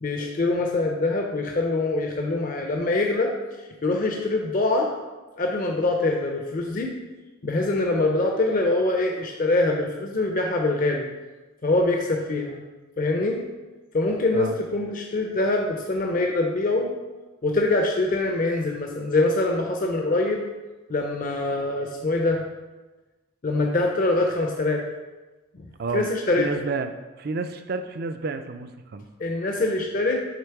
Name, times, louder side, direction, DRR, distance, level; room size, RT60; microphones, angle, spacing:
voice 1, 0.0-3.3 3.8-4.9 5.4-7.0 7.4-11.1 11.6-12.6 13.0-13.4 13.9-16.9 17.4-20.4 20.9-22.5 23.4-24.9 25.5-25.6 25.9-26.5 29.2-30.2, left 2 dB, 40° left, 1 dB, 0.5 m, -24 dB
voice 2, 26.4-26.9 27.2-29.0, right 4 dB, 45° right, 8 dB, 0.4 m, -30 dB
6.7 x 3.5 x 4.6 m, 1.2 s
head